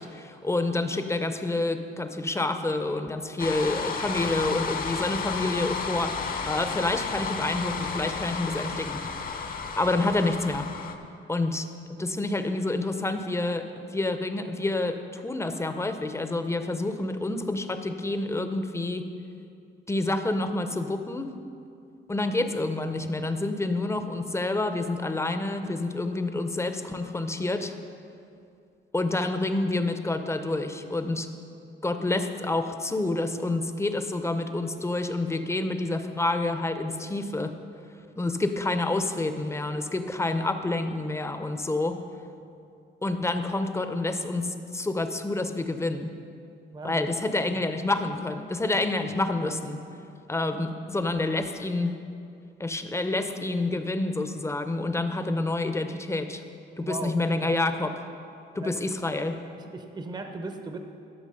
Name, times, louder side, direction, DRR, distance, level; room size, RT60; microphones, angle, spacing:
voice 1, 0.0-9.0 9.8-10.7 11.3-19.1 19.9-21.3 22.1-27.7 28.9-31.3 31.8-37.6 38.2-42.0 43.0-46.1 46.8-49.8 50.3-51.9 52.6-56.4 56.8-57.9 58.5-59.4, left 2 dB, 15° left, 8 dB, 0.6 m, -28 dB
sound 1, 3.4-11.0, left 5 dB, 45° left, 0.8 m, -32 dB
voice 2, 46.7-47.1 47.5-47.6 49.4-49.6 56.8-57.6 58.6-58.8 59.6-60.8, right 2 dB, 20° right, 5 dB, 0.7 m, -38 dB
12.0 x 6.0 x 5.5 m, 2.5 s
cardioid pair, 90°, 20 cm